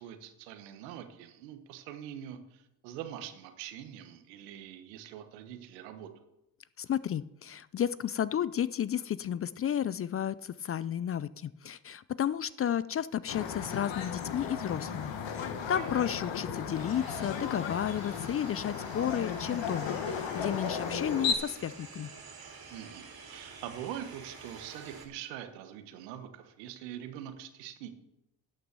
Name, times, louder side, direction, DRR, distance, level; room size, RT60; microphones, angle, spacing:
voice 1, 0.0-6.1 15.7-16.0 22.7-27.9, right 10 dB, 85° right, 8 dB, 1.2 m, -44 dB
voice 2, 6.8-22.1, left 9 dB, 30° left, 18 dB, 0.4 m, -32 dB
sound 1, 13.3-21.3, left 7 dB, 65° left, 1.5 m, -35 dB
sound 2, 16.7-25.1, right 4 dB, 45° right, 2.8 m, -49 dB
12.0 x 6.3 x 6.7 m, 0.89 s
hypercardioid pair, 55°, 49 cm